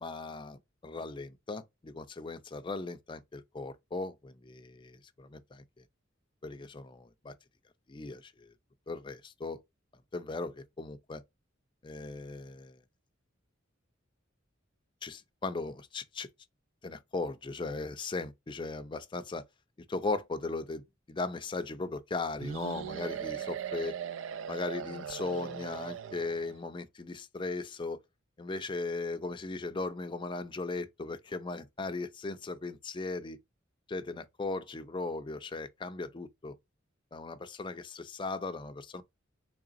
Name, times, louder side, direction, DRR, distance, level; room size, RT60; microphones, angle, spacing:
voice 1, 0.0-5.8 6.4-7.3 7.9-8.5 8.9-9.6 10.1-11.2 11.8-12.8 15.0-16.3 16.8-19.4 19.9-24.0 24.5-28.0 28.4-33.4 33.9-36.5 37.1-39.0, left 3 dB, 25° left, 0.4 m, -38 dB
sound 1, 22.4-26.6, right 8 dB, 70° right, 0.4 m, -39 dB
3.9 x 3.3 x 2.5 m
head